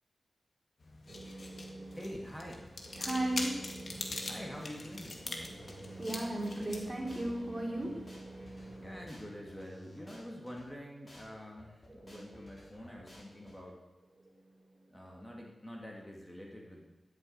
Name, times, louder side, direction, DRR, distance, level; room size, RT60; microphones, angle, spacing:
sound 1, 0.8-9.3, left 2 dB, 50° left, 1.9 m, -44 dB
voice 1, 1.1-2.2 2.8-4.6 5.3-9.0 11.9-12.4 12.6-12.7 14.2-14.3, right 1 dB, 25° right, -1 dB, 3.3 m, -39 dB
voice 2, 1.9-2.7 4.3-5.6 8.8-13.8 14.9-16.8, equal, 10° left, -1 dB, 2.6 m, -46 dB
sound 2, 2.5-8.8, right 2 dB, 45° right, 2.4 m, -58 dB
sound 3, 5.6-6.6 7.1-7.2 7.6-10.6 11.1-11.2 11.6-13.5, equal, 30° left, 4.4 m, -55 dB
13.0 x 7.3 x 9.1 m, 1.1 s
wide cardioid pair, 85°, 0 cm